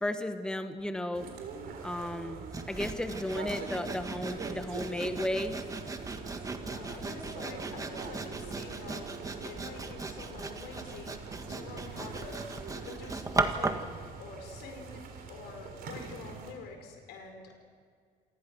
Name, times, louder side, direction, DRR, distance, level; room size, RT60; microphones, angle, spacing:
voice 1, 0.0-1.3 1.8-5.6, left 1 dB, 5° left, 8 dB, 1.2 m, -34 dB
sound 1, 1.1-16.5, right 5 dB, 65° right, 3.8 m, -44 dB
Sawing, 2.5-13.9, right 3 dB, 20° right, 1.6 m, -37 dB
voice 2, 6.6-9.1 9.4-11.2 11.5-12.4 12.8-13.7 14.2-17.6, left 4 dB, 85° left, 4 dB, 4.8 m, -46 dB
28.0 x 18.5 x 6.2 m, 2.1 s
cardioid pair, 110°, 17 cm